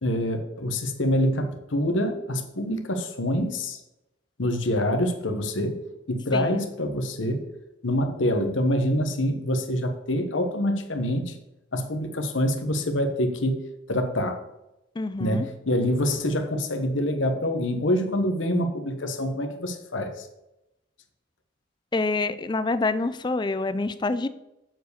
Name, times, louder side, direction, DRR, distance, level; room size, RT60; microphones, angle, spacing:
voice 1, 0.0-3.8 4.4-5.8 6.1-7.5 7.8-11.3 11.7-14.4 15.2-20.3, left 1 dB, 80° left, 6 dB, 1.2 m, -26 dB
voice 2, 6.3-6.6 15.0-15.5 21.9-24.3, left 3 dB, 25° left, 13 dB, 0.4 m, -26 dB
7.5 x 4.8 x 6.7 m, 0.91 s
head